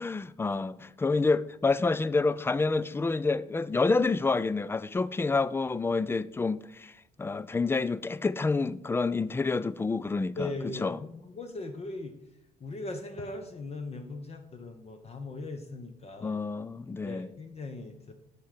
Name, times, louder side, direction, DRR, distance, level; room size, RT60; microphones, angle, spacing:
voice 1, 0.0-6.9 7.2-10.5 10.8-11.0 16.2-17.3, left 3 dB, 10° left, 0.3 m, -28 dB
voice 2, 10.4-12.1 12.6-16.4 17.0-18.1, left 2 dB, 30° left, 0.9 m, -39 dB
5.9 x 5.6 x 5.1 m
hypercardioid pair, 55°, 20 cm